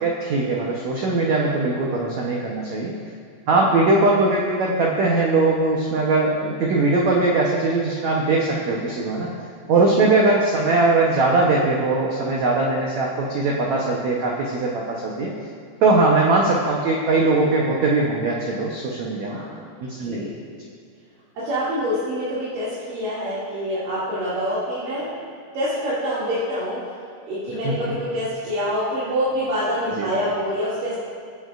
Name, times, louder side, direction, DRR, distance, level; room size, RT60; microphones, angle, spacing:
voice 1, 0.0-3.0 3.5-9.3 9.7-15.3 15.8-19.4 19.8-20.3 27.6-27.7 30.0-30.1, right 3 dB, 85° right, -3 dB, 1.6 m, -20 dB
voice 2, 3.5-3.8 9.8-10.1 16.1-16.2 19.2-19.7 19.9-20.4 21.4-25.2 25.5-26.8 27.2-30.9, equal, 60° right, -11 dB, 3.9 m, -26 dB
23.5 x 8.5 x 2.5 m, 2.2 s
omnidirectional pair, 4.6 m